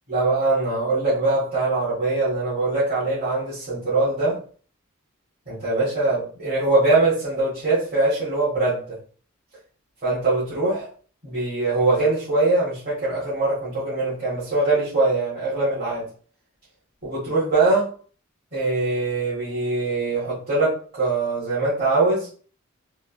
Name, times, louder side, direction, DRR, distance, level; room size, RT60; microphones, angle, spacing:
voice 1, 0.1-4.4 5.5-9.0 10.0-10.9 11.2-16.1 17.0-17.9 18.5-22.3, right 2 dB, 45° right, -11 dB, 1.9 m, -22 dB
4.0 x 2.9 x 2.6 m, 0.41 s
head